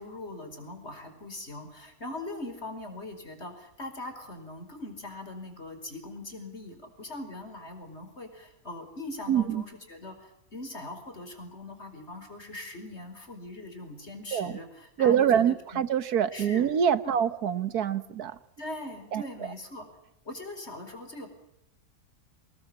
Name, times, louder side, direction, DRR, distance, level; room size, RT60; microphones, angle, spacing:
voice 1, 0.0-15.9 16.3-16.7 17.0-17.2 18.6-19.9 20.3-21.3, left 2 dB, 45° left, 6 dB, 5.3 m, -41 dB
voice 2, 9.3-9.6 14.3-14.5 15.0-18.4 19.1-19.3, right 8 dB, 90° right, 14 dB, 1.7 m, -25 dB
26.0 x 20.0 x 8.8 m, 0.78 s
omnidirectional pair, 1.6 m